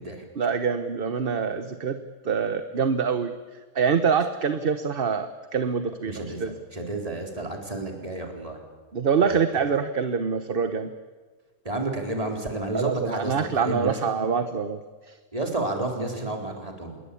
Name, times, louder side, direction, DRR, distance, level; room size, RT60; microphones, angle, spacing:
voice 1, 0.4-3.3 3.7-6.5 8.9-10.9 12.7-14.8 15.1-15.2, right 6 dB, 40° right, 9 dB, 1.1 m, -25 dB
voice 2, 6.0-8.6 9.3-9.4 11.6-14.0 15.3-17.0, right 2 dB, 25° right, 2 dB, 4.2 m, -31 dB
27.0 x 21.5 x 8.6 m, 1.4 s
omnidirectional pair, 1.6 m